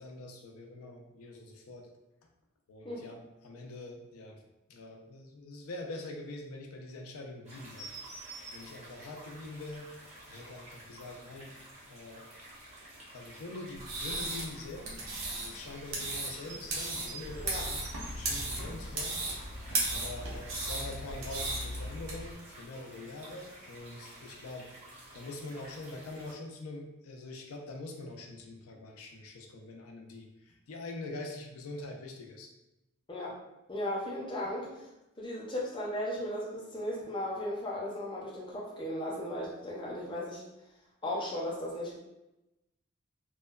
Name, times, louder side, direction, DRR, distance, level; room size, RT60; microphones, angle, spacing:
voice 1, 0.0-1.9 2.7-4.4 4.7-7.9 8.5-9.9 10.3-11.5 11.9-12.2 13.1-15.0 15.3-19.2 19.9-24.7 25.1-32.5, left 2 dB, 80° left, 2 dB, 0.4 m, -44 dB
sound 1, 7.4-26.3, right 2 dB, 30° right, 0.7 m, -50 dB
sound 2, 13.7-22.1, right 2 dB, 70° right, 0.7 m, -36 dB
sound 3, 17.2-22.3, left 1 dB, 85° right, 1.1 m, -42 dB
voice 2, 33.7-34.9 35.2-40.4 41.0-42.0, left 1 dB, 20° left, -4 dB, 0.5 m, -36 dB
2.9 x 2.1 x 2.3 m, 0.94 s
head